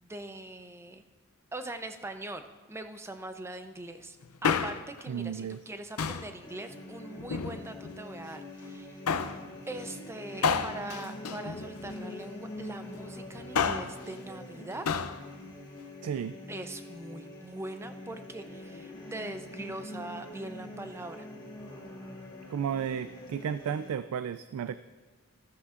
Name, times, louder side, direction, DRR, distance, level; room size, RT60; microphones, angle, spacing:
voice 1, 0.0-1.0 1.5-2.4 2.7-4.2 4.4-9.0 9.7-14.9 16.5-21.3, right 2 dB, 10° right, 7 dB, 0.5 m, -42 dB
Male speech man speaking, 4.2-5.0 6.0-6.4 7.2-8.0 9.1-9.4 10.4-12.1 13.3-14.0 14.9-15.2 15.5-15.6, left 6 dB, 85° left, 0.5 m, -30 dB
voice 2, 5.1-5.6 16.0-16.4 22.5-24.8, right 8 dB, 75° right, 13 dB, 0.3 m, -33 dB
sound 1, 6.4-23.9, left 1 dB, 20° left, 2.1 m, -44 dB
14.0 x 13.0 x 2.5 m, 1.3 s
head